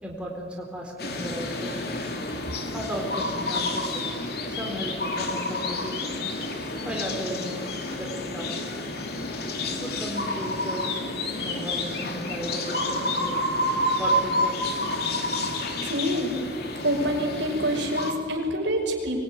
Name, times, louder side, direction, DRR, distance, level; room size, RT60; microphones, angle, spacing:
voice 1, 0.0-2.0 2.7-4.2 4.5-6.2 6.8-8.5 9.7-11.1 11.4-13.3 14.0-14.8, equal, 5° right, -1 dB, 4.2 m, -35 dB
sound 1, 1.0-18.1, left 1 dB, 55° left, 3.0 m, -29 dB
voice 2, 15.8-16.4 16.8-19.2, equal, 75° right, 1 dB, 5.6 m, -27 dB
24.5 x 22.0 x 9.8 m, 2.1 s
head